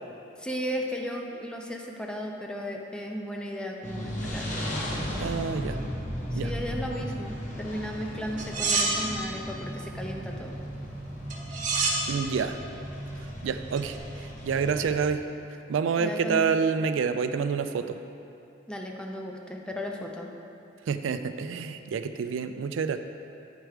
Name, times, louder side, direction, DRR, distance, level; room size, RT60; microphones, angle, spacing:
voice 1, 0.4-4.8 6.3-10.6 16.0-16.5 18.7-20.3, equal, 5° left, 1 dB, 0.5 m, -35 dB
sound 1, 3.8-14.9, equal, 40° left, 1.0 m, -35 dB
voice 2, 5.2-5.8 6.3-6.5 12.1-12.6 13.4-15.3 15.7-18.0 20.9-23.0, right 6 dB, 80° right, 9 dB, 0.3 m, -28 dB
sound 2, 8.4-9.3 11.3-12.1 13.8-14.0, right 3 dB, 40° right, 1.0 m, -27 dB
9.1 x 4.6 x 4.8 m, 2.7 s
head